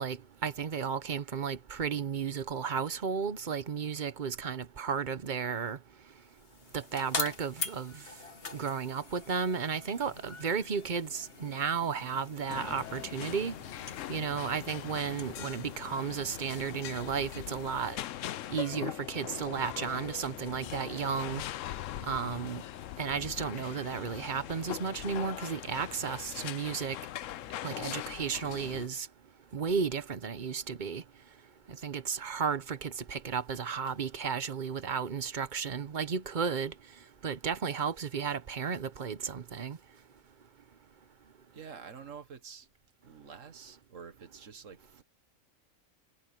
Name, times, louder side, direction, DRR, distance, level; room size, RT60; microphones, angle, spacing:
voice 1, 0.0-5.8 6.7-7.9 8.5-13.5 14.1-18.0 18.5-21.4 22.0-22.6 23.0-27.0 27.6-29.1 29.5-31.0 31.8-36.7 37.2-39.8, right 6 dB, 45° right, 0.9 m, -33 dB
sound 1, 6.2-17.9, left 4 dB, 50° left, 1.8 m, -44 dB
sound 2, 12.5-28.9, left 13 dB, 80° left, 1.0 m, -41 dB
voice 2, 41.5-42.7 43.0-45.0, right 6 dB, 80° right, 1.8 m, -48 dB
omnidirectional pair, 1.3 m